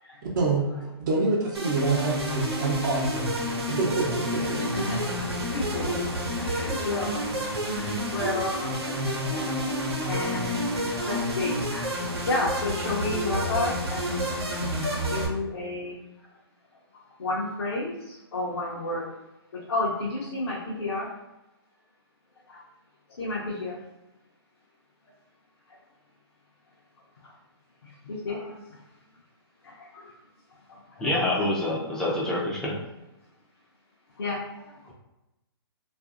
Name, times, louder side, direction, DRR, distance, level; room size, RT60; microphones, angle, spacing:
voice 1, 1.1-3.3 3.7-4.6, right 3 dB, 50° right, -2 dB, 0.8 m, -26 dB
sound 1, 1.5-15.3, equal, 80° right, 0.9 m, -29 dB
voice 2, 4.5-5.3 5.5-6.2 6.4-9.0 9.3-9.5 10.0-11.9 12.3-14.5 15.1-16.0 17.2-17.9 18.3-19.1 19.7-21.1 23.2-23.8 28.1-28.4 31.0-31.3 32.1-32.2 34.2-34.4, left 2 dB, 70° left, -5 dB, 0.7 m, -31 dB
voice 3, 31.0-32.8, left 1 dB, 5° left, -5 dB, 0.5 m, -26 dB
2.6 x 2.5 x 2.4 m, 0.96 s
hypercardioid pair, 130°, 13 cm